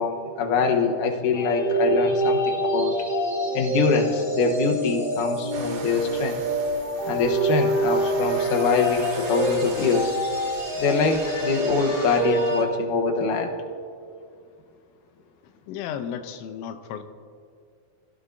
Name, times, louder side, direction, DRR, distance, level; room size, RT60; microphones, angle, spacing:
voice 1, 0.0-2.9 3.5-6.4 7.0-10.1 10.8-13.5, left 4 dB, 70° left, 2 dB, 2.0 m, -24 dB
sound 1, 1.3-12.6, right 1 dB, 30° left, 4.3 m, -26 dB
sound 2, 5.5-12.2, right 5 dB, 80° right, 3.9 m, -41 dB
voice 2, 15.4-17.0, left 8 dB, 90° left, 8 dB, 3.3 m, -34 dB
28.0 x 16.5 x 2.8 m, 2.4 s
omnidirectional pair, 5.3 m